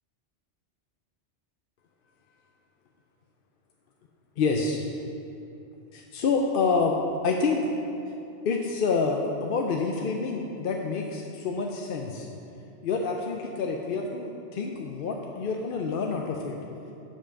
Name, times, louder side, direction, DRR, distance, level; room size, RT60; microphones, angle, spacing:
voice 1, 4.4-4.8 5.9-7.0 7.2-7.6 8.4-12.3 12.8-16.6, left 4 dB, 60° left, 2 dB, 0.7 m, -27 dB
7.4 x 7.3 x 5.7 m, 2.8 s
omnidirectional pair, 1.2 m